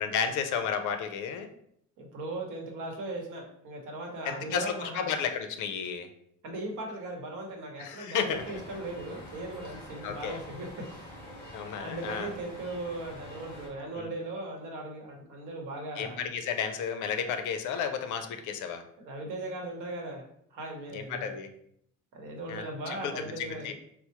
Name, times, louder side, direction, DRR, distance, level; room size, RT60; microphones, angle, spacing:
voice 1, 0.0-1.5 4.2-6.1 7.8-8.6 10.0-10.4 11.5-12.3 14.0-14.1 16.0-18.8 20.9-21.5 22.5-23.7, left 7 dB, 65° left, 7 dB, 0.5 m, -33 dB
voice 2, 2.0-5.1 6.4-11.2 11.8-16.3 19.0-20.2 20.5-21.3 22.1-23.7, right 2 dB, 70° right, 1 dB, 0.9 m, -38 dB
sound 1, 8.3-13.7, equal, 20° left, 1.5 m, -46 dB
4.3 x 2.0 x 2.9 m, 0.70 s
cardioid pair, 170°, 32 cm